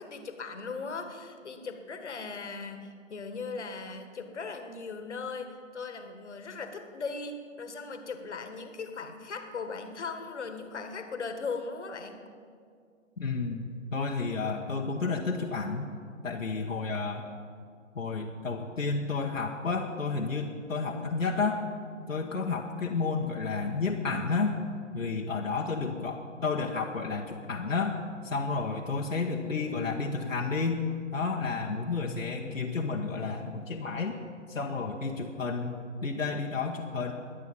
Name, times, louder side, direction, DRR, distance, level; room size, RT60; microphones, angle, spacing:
voice 1, 0.0-12.2, left 4 dB, 60° left, 7 dB, 1.7 m, -38 dB
voice 2, 13.2-15.9 16.2-17.3 17.9-21.6 22.1-24.6 24.9-28.0 28.2-30.8 31.1-34.2 34.5-37.1, left 4 dB, 75° left, 0 dB, 1.3 m, -31 dB
21.5 x 8.2 x 5.4 m, 2.2 s
figure-of-eight pair, 135°, 39 cm